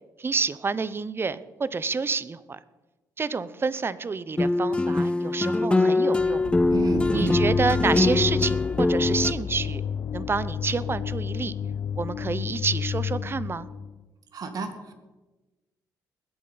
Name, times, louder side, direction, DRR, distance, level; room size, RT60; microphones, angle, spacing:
voice 1, 0.2-2.6 3.2-6.4 7.1-9.8 10.1-11.5 12.0-13.7, right 4 dB, 30° right, 17 dB, 0.8 m, -28 dB
sound 1, 4.4-9.3, left 2 dB, 15° left, 0.5 m, -23 dB
sound 2, 6.2-14.0, left 7 dB, 60° left, 0.8 m, -31 dB
voice 2, 6.7-7.4 14.3-14.9, right 4 dB, 55° right, 7 dB, 2.2 m, -31 dB
20.0 x 8.4 x 5.7 m, 1.2 s
cardioid pair, 75°, 8 cm